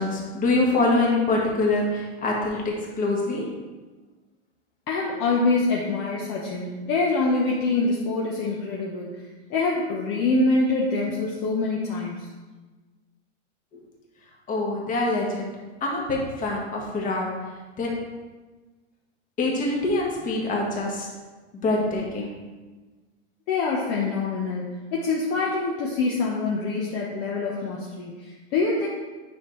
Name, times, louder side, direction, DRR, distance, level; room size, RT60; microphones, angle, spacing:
voice 1, 0.0-3.5 13.7-13.8 14.5-15.5 15.8-17.4 17.8-18.0 19.4-21.1 21.6-22.4, left 2 dB, 25° left, -2 dB, 1.6 m, -25 dB
voice 2, 4.9-9.2 9.5-12.3 23.5-28.9, left 3 dB, 40° left, -3 dB, 1.0 m, -25 dB
9.5 x 5.6 x 3.2 m, 1.3 s
supercardioid pair, 150°, 35 cm